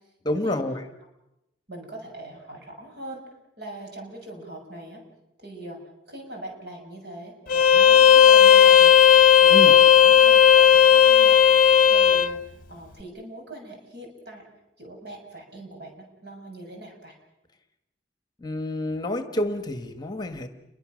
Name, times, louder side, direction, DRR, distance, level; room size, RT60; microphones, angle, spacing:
voice 1, 0.2-0.8 9.5-9.7 18.4-20.5, left 1 dB, 25° left, 8 dB, 1.5 m, -28 dB
voice 2, 1.7-3.2 3.6-5.0 5.4-5.8 6.1-8.9 9.4-12.4 12.7-14.5 14.8-17.1, right 1 dB, 65° right, 1 dB, 6.8 m, -41 dB
Bowed string instrument, 7.5-12.3, left 9 dB, 50° left, 0.9 m, -14 dB
29.5 x 23.0 x 6.4 m, 0.90 s
head